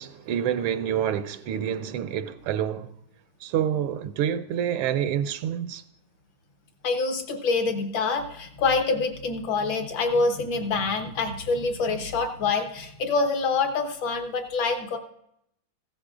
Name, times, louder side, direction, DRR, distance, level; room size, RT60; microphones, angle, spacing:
voice 1, 0.0-2.9 3.4-5.8, right 9 dB, 85° right, 1.5 m, -27 dB
voice 2, 6.8-15.0, left 4 dB, 65° left, 1.8 m, -26 dB
15.5 x 13.0 x 2.5 m
omnidirectional pair, 2.4 m